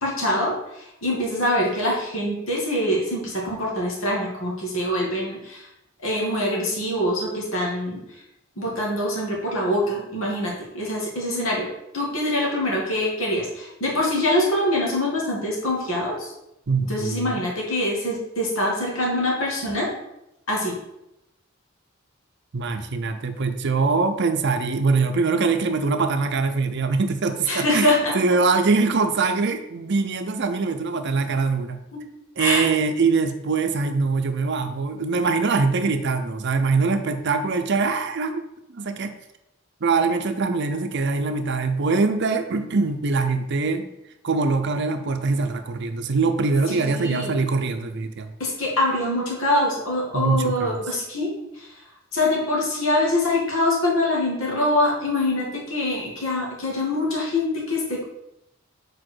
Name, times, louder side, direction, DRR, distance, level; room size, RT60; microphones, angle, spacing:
voice 1, 0.0-5.7 6.0-8.0 8.6-11.7 11.9-16.3 16.9-19.9 20.5-20.8 27.5-28.1 31.9-32.0 32.4-32.7 46.7-47.4 48.4-51.7 52.1-58.0, left 1 dB, 75° left, -3 dB, 2.2 m, -24 dB
voice 2, 16.7-17.4 22.5-31.8 32.4-38.4 38.7-39.1 39.8-43.9 44.2-48.3 50.1-50.8, right 4 dB, 55° right, 7 dB, 0.6 m, -23 dB
5.0 x 4.7 x 6.2 m, 0.86 s
head